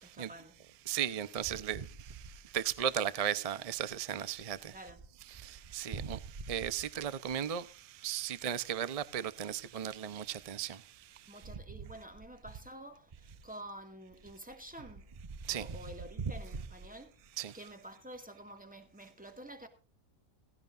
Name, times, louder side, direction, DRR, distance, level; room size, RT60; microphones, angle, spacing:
voice 1, 0.0-0.6 4.7-5.0 11.3-15.1 15.5-19.7, right 1 dB, 5° right, 2.1 m, -49 dB
voice 2, 0.9-1.8 2.5-4.6 5.7-6.2 6.5-7.6 8.0-10.8 15.5-15.7 17.4-17.5, right 9 dB, 35° right, 0.7 m, -35 dB
16.5 x 16.0 x 2.6 m
omnidirectional pair, 1.5 m